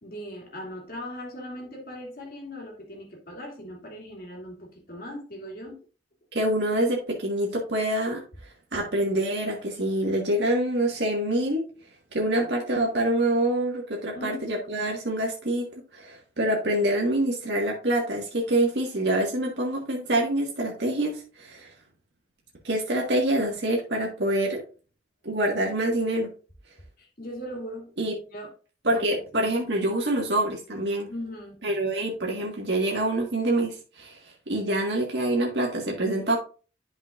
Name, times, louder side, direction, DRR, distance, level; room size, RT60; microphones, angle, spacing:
voice 1, 0.0-5.8 14.1-14.4 27.0-27.9 28.3-28.5 28.9-29.5 31.1-31.6, equal, 50° left, 0 dB, 2.5 m, -39 dB
voice 2, 6.3-8.2 8.7-11.6 12.1-15.7 15.9-21.7 22.6-24.6 25.2-26.3 28.0-28.1 28.8-31.1 31.6-34.2 34.5-36.4, right 1 dB, 70° right, -1 dB, 1.7 m, -26 dB
11.5 x 5.1 x 2.5 m, 0.37 s
head